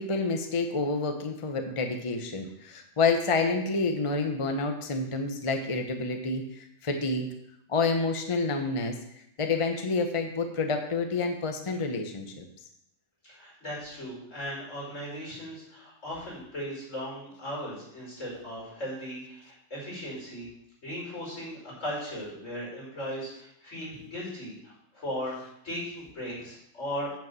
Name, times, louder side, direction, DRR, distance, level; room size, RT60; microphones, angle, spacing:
voice 1, 0.0-6.4 6.8-7.3 7.7-8.9 9.4-12.4, left 3 dB, 30° left, 5 dB, 0.9 m, -28 dB
voice 2, 13.3-20.5 20.8-27.1, equal, 85° left, -5 dB, 5.5 m, -37 dB
9.0 x 5.4 x 7.5 m, 0.77 s
omnidirectional pair, 1.3 m